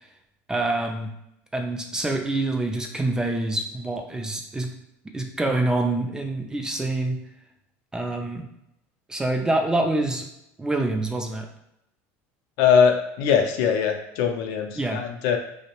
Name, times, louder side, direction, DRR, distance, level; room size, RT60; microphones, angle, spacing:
voice 1, 0.5-1.1 1.5-4.7 5.1-7.2 7.9-8.5 9.1-10.3 10.6-11.5 14.8-15.0, right 2 dB, 10° right, 3 dB, 0.3 m, -26 dB
voice 2, 12.6-15.4, left 7 dB, 65° left, 5 dB, 0.4 m, -21 dB
2.5 x 2.0 x 2.9 m, 0.81 s
supercardioid pair, 120°, 7 cm